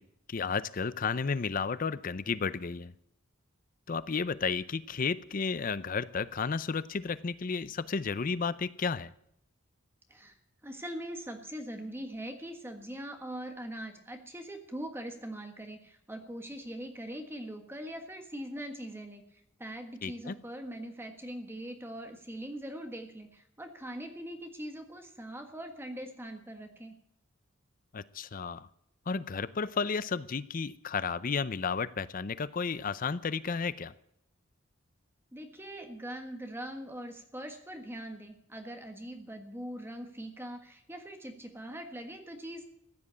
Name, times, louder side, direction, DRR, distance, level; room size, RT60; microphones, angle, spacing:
voice 1, 0.3-2.9 3.9-9.1 20.0-20.4 27.9-28.7 29.1-33.9, left 5 dB, 40° left, 16 dB, 0.5 m, -32 dB
voice 2, 10.6-19.2 19.6-26.9 35.3-42.7, right 1 dB, 10° right, 5 dB, 1.5 m, -42 dB
15.5 x 9.9 x 8.3 m, 0.72 s
head